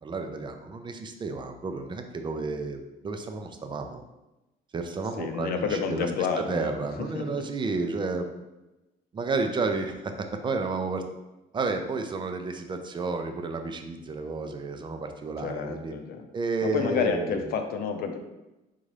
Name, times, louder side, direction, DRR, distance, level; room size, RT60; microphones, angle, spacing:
voice 1, 0.0-4.0 4.7-6.1 6.4-8.3 9.1-11.0 11.5-15.9 16.3-17.4, right 3 dB, 30° right, 6 dB, 0.5 m, -31 dB
voice 2, 5.2-6.7 7.1-7.3 15.4-16.3 16.6-18.2, left 6 dB, 65° left, 6 dB, 0.6 m, -29 dB
4.1 x 3.7 x 3.3 m, 1.0 s
cardioid pair, 110°, 17 cm